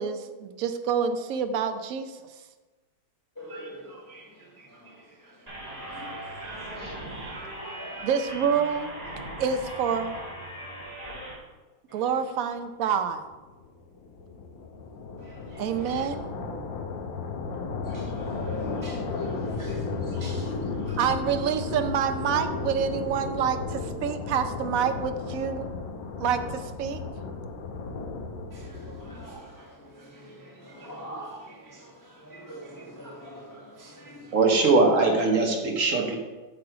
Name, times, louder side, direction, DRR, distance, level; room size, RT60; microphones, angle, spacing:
voice 1, 0.0-2.2 8.0-8.9 9.4-10.2 11.9-13.2 15.6-16.2 21.0-25.7 26.2-27.0, right 7 dB, 65° right, 0.8 m, -27 dB
voice 2, 3.4-8.1 11.9-12.2 15.2-16.1 17.8-21.1 28.5-34.4, equal, 15° left, 0.9 m, -45 dB
sound 1, 5.5-11.3, right 1 dB, 20° right, 2.6 m, -39 dB
sound 2, 13.3-29.6, left 4 dB, 75° left, 1.5 m, -34 dB
voice 3, 34.3-36.2, right 3 dB, 45° right, 1.4 m, -21 dB
8.8 x 6.4 x 4.7 m
omnidirectional pair, 2.1 m